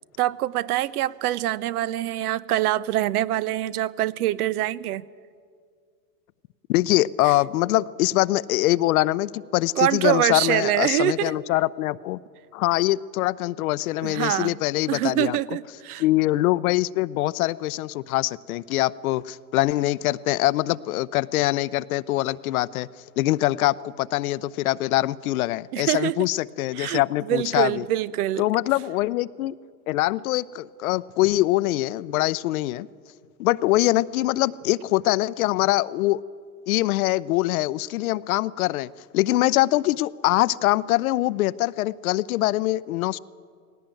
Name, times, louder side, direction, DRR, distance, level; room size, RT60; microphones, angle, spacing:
voice 1, 0.2-5.0 9.8-11.3 14.0-14.6 14.9-16.0 25.7-26.2 26.7-28.5, right 14 dB, 65° right, 20 dB, 0.8 m, -25 dB
voice 2, 6.7-12.2 12.5-15.4 16.0-22.9 23.2-27.8 28.4-29.5 29.9-32.9 33.4-36.2 36.7-43.2, left 17 dB, 60° left, 19 dB, 0.6 m, -23 dB
19.0 x 17.5 x 9.0 m, 2.1 s
supercardioid pair, 140°, 49 cm